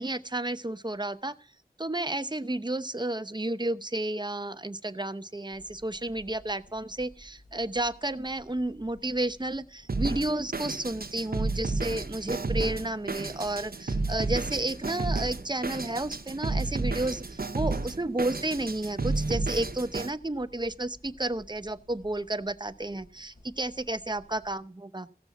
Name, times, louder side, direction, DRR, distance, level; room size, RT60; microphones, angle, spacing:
voice 1, 0.0-1.3 1.8-25.2, right 1 dB, 30° right, 12 dB, 0.8 m, -32 dB
sound 1, 5.5-24.5, equal, 55° left, 4.2 m, -56 dB
Drum kit, 9.9-20.1, right 3 dB, 75° right, 0.8 m, -32 dB
15.5 x 6.9 x 7.2 m, 0.40 s
wide cardioid pair, 45°, 16 cm